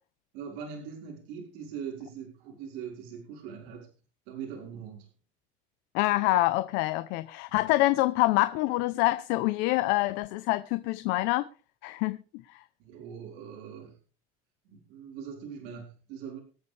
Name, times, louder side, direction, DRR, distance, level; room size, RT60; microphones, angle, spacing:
voice 1, 0.3-3.9 4.3-5.1 7.5-7.6 12.8-14.0 14.6-16.4, right 7 dB, 75° right, 4.9 m, -41 dB
voice 2, 5.9-11.5 11.8-12.2, left 18 dB, 70° left, 0.8 m, -26 dB
24.5 x 8.7 x 3.4 m
cardioid pair, 150°, 18 cm